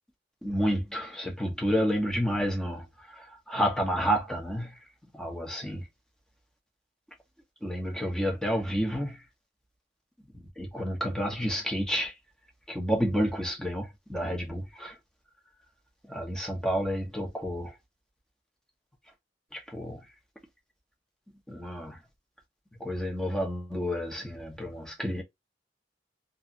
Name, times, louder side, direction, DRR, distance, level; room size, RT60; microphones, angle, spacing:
voice 1, 0.4-4.8 5.1-5.9 7.6-9.2 10.6-12.2 12.7-15.0 16.1-17.8 19.5-20.1 21.5-22.0 22.8-25.2, equal, 5° left, 1.0 m, -30 dB
3.2 x 2.6 x 2.9 m
head